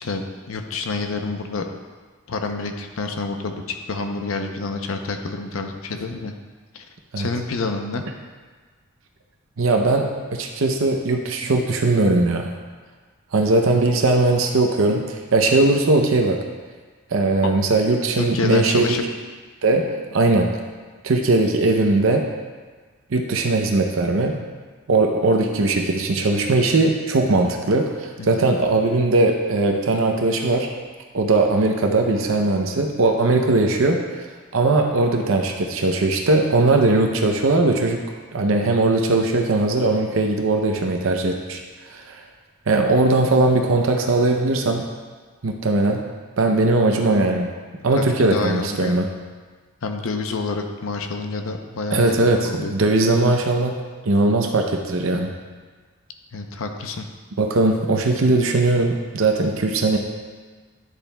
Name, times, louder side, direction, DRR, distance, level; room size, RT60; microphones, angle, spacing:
voice 1, 0.0-1.7 2.3-6.3 6.7-6.8 7.2-8.0 17.4-17.5 18.2-19.0 28.2-28.4 48.0-49.0 49.8-52.7 56.3-57.0, left 3 dB, 75° left, 5 dB, 0.6 m, -28 dB
voice 2, 9.6-12.5 13.3-16.4 17.1-19.1 19.6-20.5 21.0-22.2 23.1-24.4 24.9-30.7 31.1-34.3 34.5-38.0 38.3-41.6 41.9-42.2 42.7-44.8 45.4-46.0 46.4-47.5 47.8-49.1 51.9-53.8 54.0-55.3 57.4-60.0, right 2 dB, 70° right, 3 dB, 0.6 m, -19 dB
9.9 x 7.1 x 2.2 m, 1.4 s
head